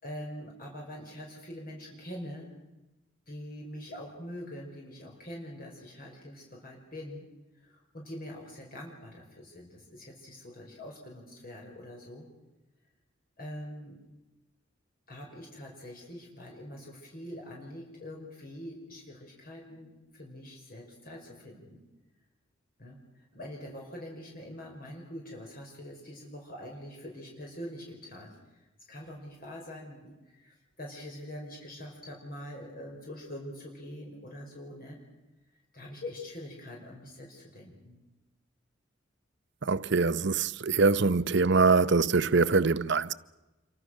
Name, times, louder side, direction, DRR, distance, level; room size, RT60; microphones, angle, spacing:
voice 1, 0.0-2.6 3.3-7.2 7.6-12.3 13.4-14.0 15.1-21.8 22.8-35.0 35.5-38.0, left 1 dB, 50° left, 5.4 m, -44 dB
voice 2, 39.6-43.1, right 4 dB, 60° right, 0.8 m, -24 dB
28.0 x 24.5 x 6.6 m
head